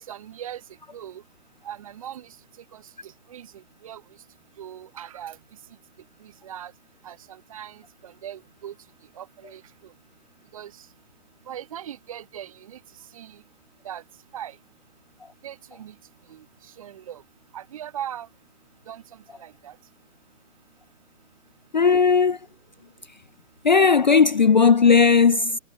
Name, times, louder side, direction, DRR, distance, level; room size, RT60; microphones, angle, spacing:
voice 1, 0.1-0.6 0.9-1.2 1.6-2.3 2.7-2.8 3.3-3.5 3.8-4.0 4.6-5.4 6.4-6.7 7.0-7.2 7.5-7.8 8.0-8.7 9.2-9.6 10.5-10.7 11.5-12.8 13.1-13.3 13.8-14.0 14.3-14.5 15.4-15.9 16.3-16.4 16.8-17.2 17.5-18.3 18.9-19.0 19.4-19.7, right 10 dB, 25° right, 0.8 m, -38 dB
voice 2, 21.7-22.4 23.6-25.6, left 5 dB, 35° left, 0.4 m, -16 dB
hypercardioid pair, 155°, 41 cm